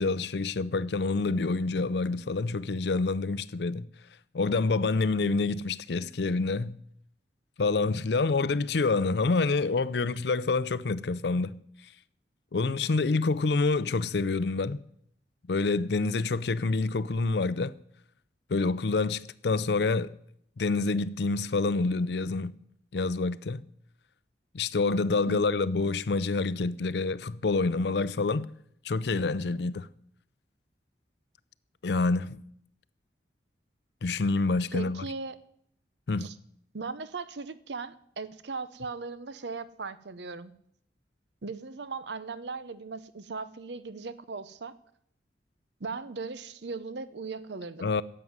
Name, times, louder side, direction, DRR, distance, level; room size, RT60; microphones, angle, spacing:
voice 1, 0.0-3.9 4.3-6.8 7.6-11.6 12.5-14.8 15.5-17.7 18.5-20.1 20.6-22.5 22.9-23.6 24.5-28.5 28.8-29.9 31.8-32.4 34.0-35.1 36.1-36.3 47.8-48.0, left 3 dB, 70° left, 0.5 m, -27 dB
voice 2, 25.3-25.6 34.7-35.4 36.2-36.4 36.7-40.5 41.4-44.7 45.8-47.9, right 4 dB, 75° right, 0.8 m, -38 dB
11.0 x 7.7 x 9.5 m
head